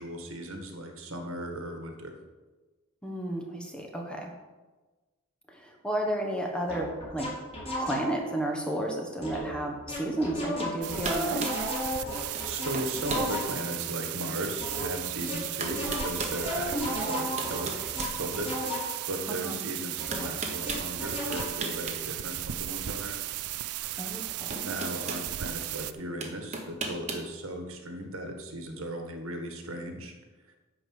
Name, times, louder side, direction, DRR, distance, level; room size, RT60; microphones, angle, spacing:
voice 1, 0.0-2.1 12.0-17.7 18.1-23.2 24.6-30.1, right 1 dB, 70° right, 4 dB, 1.6 m, -37 dB
voice 2, 3.0-4.3 5.5-7.3 7.8-11.4 19.3-19.6 24.0-24.7, right 1 dB, 5° left, 1 dB, 1.2 m, -32 dB
sound 1, 6.7-8.3 9.2-9.6 9.9-13.7 14.6-19.1 20.0-21.6, left 1 dB, 30° left, 3.8 m, -34 dB
sound 2, 10.6-10.8 11.0-11.6 12.3-12.5 12.7-13.3 13.9-14.0 15.1-15.2 15.6-16.4 17.1-18.7 20.1-20.9 21.3-22.0 22.3-22.4 23.9-24.0 24.5-25.3 26.2-27.3, right 3 dB, 30° right, 1.2 m, -35 dB
sound 3, 10.8-25.9, right 13 dB, 90° right, 0.5 m, -36 dB
11.0 x 5.0 x 7.7 m, 1.2 s
head